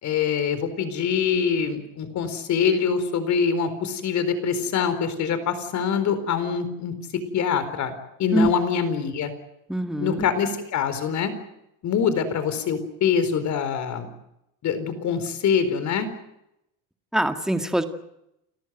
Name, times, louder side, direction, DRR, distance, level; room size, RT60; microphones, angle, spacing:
voice 1, 0.0-6.9 7.3-7.9 8.2-9.3 10.0-11.3 11.8-14.1 14.6-16.1, left 7 dB, 45° left, 11 dB, 4.3 m, -24 dB
voice 2, 9.7-10.3 17.1-17.8, right 1 dB, ahead, 7 dB, 2.0 m, -23 dB
29.0 x 14.5 x 9.1 m, 0.83 s
supercardioid pair, 120°, 39 cm